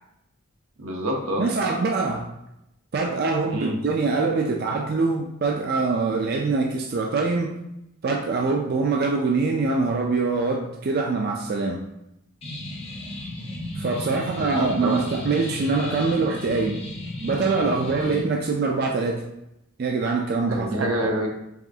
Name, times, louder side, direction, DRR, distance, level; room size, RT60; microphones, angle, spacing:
voice 1, 0.8-1.4 3.5-3.7 14.4-15.0 20.5-21.3, equal, 80° right, 1 dB, 0.9 m, -27 dB
voice 2, 1.4-2.3 2.9-7.5 8.0-11.8 13.7-16.8 17.2-19.3 19.8-21.1, right 4 dB, 45° right, 0 dB, 0.4 m, -24 dB
sound 1, 12.4-18.2, left 1 dB, 30° left, 0.7 m, -34 dB
4.8 x 3.1 x 2.7 m, 0.84 s
head